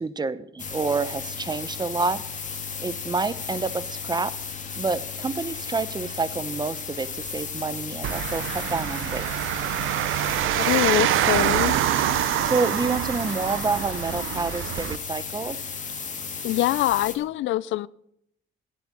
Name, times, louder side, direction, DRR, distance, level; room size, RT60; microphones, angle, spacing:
voice 1, 0.0-2.2 2.8-4.3 4.8-9.3 12.4-15.6, right 4 dB, 20° right, 0.8 m, -28 dB
sound 1, 0.6-17.2, left 6 dB, 40° left, 1.9 m, -35 dB
sound 2, 8.0-15.0, right 13 dB, 85° right, 0.6 m, -25 dB
voice 2, 10.6-11.8 16.4-17.9, left 15 dB, 75° left, 0.4 m, -24 dB
10.5 x 8.3 x 7.4 m
cardioid pair, 90°, 20 cm